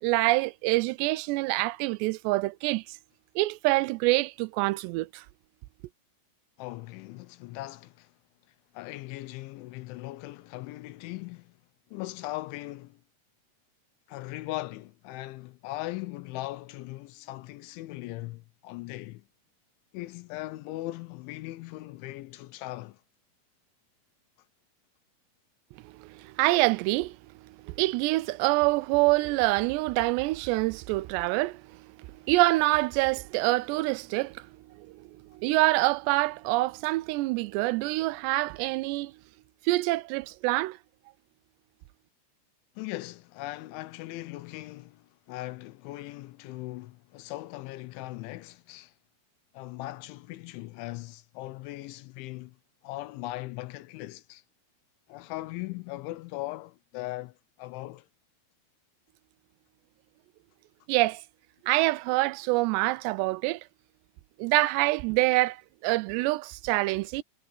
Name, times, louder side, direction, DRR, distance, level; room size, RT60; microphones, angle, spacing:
voice 1, 0.0-3.0 3.4-5.2 25.8-27.2 27.6-31.8 32.3-34.5 34.8-35.0 35.3-39.1 39.7-40.8 60.9-61.2 61.7-63.6 64.4-67.2, right 20 dB, 85° right, 2.4 m, -26 dB
voice 2, 6.6-8.1 8.7-11.6 11.9-13.0 14.1-19.2 19.9-23.0 42.8-48.9 49.5-52.6 52.8-54.4 55.1-58.1, left 18 dB, 80° left, 3.1 m, -39 dB
omnidirectional pair, 5.5 m